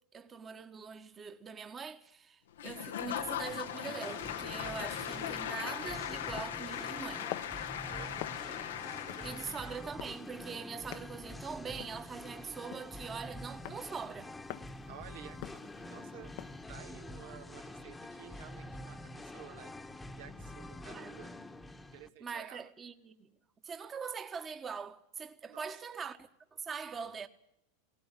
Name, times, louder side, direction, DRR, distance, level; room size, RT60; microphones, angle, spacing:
voice 1, 0.1-7.3 9.2-14.3 20.9-21.2 22.2-23.3 23.6-27.3, right 6 dB, 25° right, 1.4 m, -43 dB
Applause / Crowd, 2.6-9.9, left 10 dB, 90° left, 1.1 m, -39 dB
Singing, 2.9-22.1, left 1 dB, 10° left, 1.2 m, -47 dB
sound 1, 6.4-16.6, left 16 dB, 60° left, 0.9 m, -49 dB
voice 2, 7.7-8.6 9.0-9.5 14.9-16.4 16.7-19.8 20.2-21.4 21.9-22.7 25.5-26.0, right 10 dB, 75° right, 1.5 m, -53 dB
18.0 x 17.0 x 10.0 m
hypercardioid pair, 115°, 0 cm